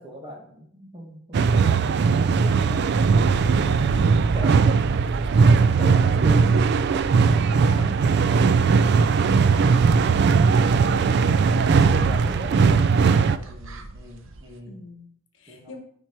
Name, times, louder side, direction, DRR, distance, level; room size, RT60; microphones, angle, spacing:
voice 1, 0.0-3.0 3.9-4.8 5.3-8.0 11.6-14.8 15.5-15.8, equal, 20° right, 0 dB, 1.6 m, -39 dB
sound 1, 1.3-13.4, right 5 dB, 55° right, 0.3 m, -19 dB
sound 2, 2.6-8.1 8.6-8.7 9.0-14.5, right 2 dB, 75° right, 0.7 m, -34 dB
voice 2, 3.5-4.2 5.4-6.0 11.5-12.1 14.6-15.8, left 2 dB, 65° left, 4 dB, 1.3 m, -43 dB
7.8 x 4.5 x 4.6 m, 0.63 s
head